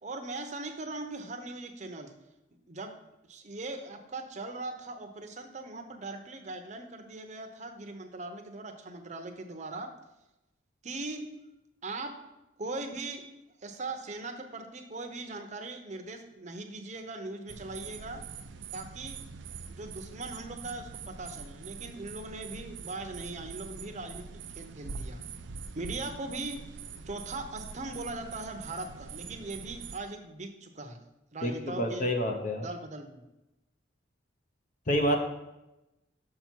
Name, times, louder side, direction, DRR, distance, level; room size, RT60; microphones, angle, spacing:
voice 1, 0.0-2.1 2.7-2.9 3.3-9.9 10.8-11.3 11.8-12.2 12.6-13.3 13.6-18.2 18.7-19.2 19.7-25.2 25.7-26.6 27.1-31.0 31.3-32.1 32.6-33.2, right 2 dB, 40° right, 5 dB, 0.7 m, -40 dB
sound 1, 17.5-30.0, right 5 dB, 70° right, 0.5 m, -44 dB
voice 2, 31.4-32.7 34.9-35.2, equal, 45° left, 3 dB, 0.8 m, -28 dB
6.4 x 5.8 x 4.5 m, 0.95 s
head